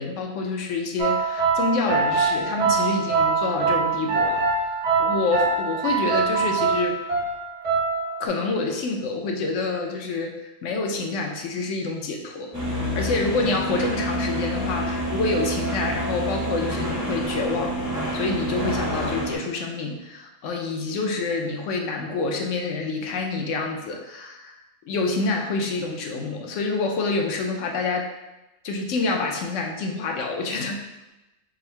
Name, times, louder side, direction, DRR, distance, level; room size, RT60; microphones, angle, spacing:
voice 1, 0.0-4.4 5.0-7.0 8.2-10.3 10.6-17.8 18.1-24.6 24.9-28.1 28.6-30.8, left 3 dB, 75° left, 2 dB, 0.9 m, -27 dB
sound 1, 1.0-8.3, right 4 dB, 70° right, 1.4 m, -23 dB
sound 2, 12.5-19.3, equal, 20° right, 0.6 m, -27 dB
3.6 x 2.0 x 4.3 m, 1.0 s
omnidirectional pair, 1.3 m